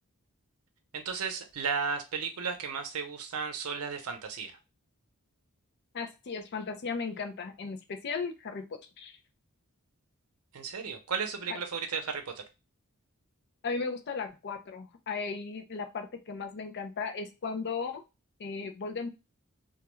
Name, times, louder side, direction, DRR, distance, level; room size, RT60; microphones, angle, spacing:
voice 1, 0.9-4.6 10.5-12.4, right 5 dB, 90° right, 0.6 m, -34 dB
voice 2, 5.9-9.2 11.5-11.6 13.6-18.0 18.4-19.1, left 4 dB, 50° left, 0.4 m, -36 dB
2.3 x 2.2 x 3.0 m
head